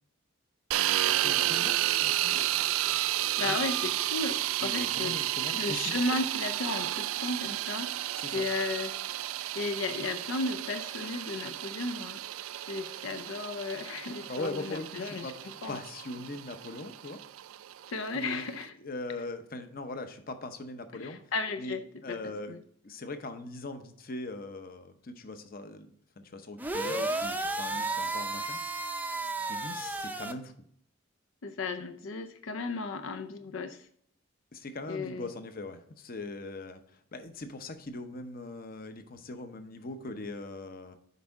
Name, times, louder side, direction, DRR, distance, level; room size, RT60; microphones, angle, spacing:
sound 1, 0.7-18.6, right 14 dB, 85° right, 0.3 m, -32 dB
voice 1, 1.1-2.5 3.4-3.6 4.6-6.0 8.2-8.5 14.3-15.3 15.7-17.2 18.1-18.4 18.8-21.2 21.6-21.8 22.0-22.5 22.8-28.6 29.5-30.5 34.5-36.8 37.1-41.0, left 2 dB, 45° left, 0.8 m, -40 dB
voice 2, 3.4-5.2 5.5-8.1 8.3-8.9 9.5-12.2 12.7-15.8 17.9-18.7 21.0-22.6 31.4-33.9 34.9-35.3, left 3 dB, 80° left, 0.5 m, -35 dB
sound 2, 26.6-30.3, right 2 dB, 10° right, 0.5 m, -33 dB
8.2 x 5.3 x 3.5 m
head